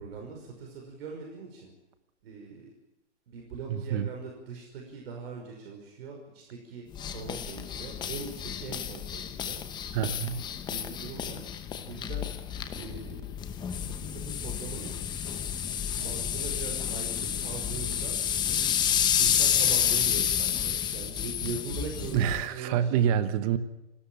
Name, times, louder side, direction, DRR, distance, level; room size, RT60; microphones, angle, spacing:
voice 1, 0.0-1.7 2.2-2.7 3.3-9.6 10.7-11.5 11.8-12.3 12.7-13.2 13.8-15.0 16.0-18.2 19.2-22.9, right 5 dB, 55° right, 5.7 m, -41 dB
voice 2, 3.7-4.1 9.9-10.4 22.1-23.6, right 9 dB, 30° right, 1.2 m, -27 dB
sound 1, 6.9-22.5, left 9 dB, 10° left, 0.9 m, -30 dB
29.0 x 13.0 x 8.8 m
hypercardioid pair, 155°, 36 cm